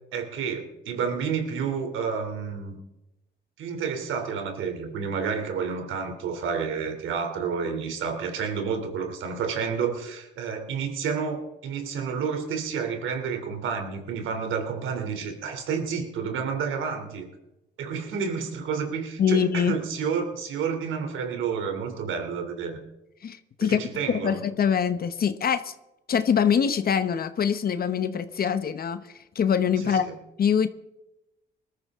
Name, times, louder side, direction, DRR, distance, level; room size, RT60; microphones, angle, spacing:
voice 1, 0.1-2.8 3.6-17.3 17.8-22.8 23.6-24.4 29.8-30.2, right 6 dB, 80° right, 5 dB, 3.2 m, -30 dB
voice 2, 19.2-19.7 23.2-23.8 24.2-25.7 26.1-29.0 29.3-30.0 30.4-30.7, left 7 dB, 50° left, 11 dB, 1.0 m, -24 dB
20.5 x 13.5 x 3.7 m, 0.93 s
cardioid pair, 90°, 20 cm